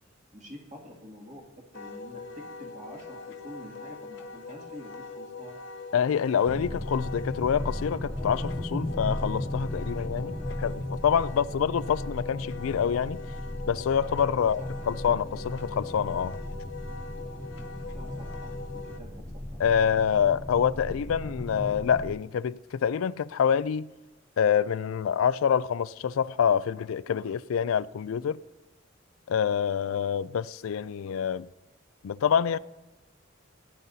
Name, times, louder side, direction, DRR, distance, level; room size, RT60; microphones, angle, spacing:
voice 1, 0.3-1.4 1.7-5.6 14.2-15.2 17.9-20.0, equal, 35° right, 2.2 m, -47 dB
Wind instrument woodwind instrument, 1.7-19.0, left 3 dB, 60° left, 0.7 m, -42 dB
voice 2, 5.9-13.2 13.7-14.6 14.9-16.3 19.6-23.9 24.4-28.4 29.3-31.5 32.0-32.6, left 7 dB, 85° left, 0.4 m, -26 dB
sound 1, 6.5-22.1, left 1 dB, 5° left, 0.4 m, -36 dB
18.5 x 11.5 x 2.7 m
head